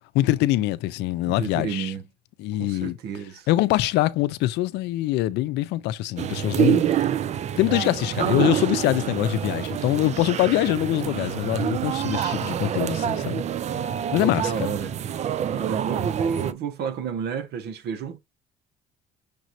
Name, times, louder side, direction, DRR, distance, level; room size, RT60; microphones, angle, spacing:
voice 1, 0.1-1.9 2.4-3.0 3.5-6.8 7.6-13.4 14.1-14.7, left 16 dB, 85° left, 0.5 m, -24 dB
voice 2, 1.3-2.0 2.6-3.5 14.2-14.9 15.4-18.2, right 6 dB, 75° right, 0.9 m, -30 dB
sound 1, 6.2-16.5, right 10 dB, 45° right, 0.4 m, -27 dB
6.6 x 3.0 x 2.5 m
cardioid pair, 110°, 17 cm